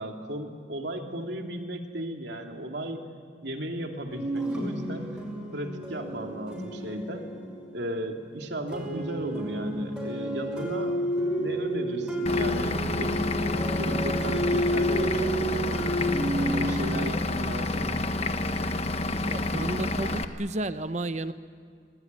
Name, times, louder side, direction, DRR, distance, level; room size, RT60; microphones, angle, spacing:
voice 1, 0.0-3.1 3.4-5.2 5.5-7.3 7.7-15.8 16.3-18.0, right 1 dB, 70° right, 3 dB, 2.8 m, -35 dB
sound 1, 4.1-8.1 8.7-17.0, equal, 5° right, 6.0 m, -30 dB
Vehicle / Engine, 12.3-20.3, left 2 dB, 35° left, 1.1 m, -29 dB
voice 2, 19.2-21.3, right 2 dB, 40° right, 12 dB, 0.9 m, -32 dB
25.5 x 21.5 x 9.6 m, 2.1 s
head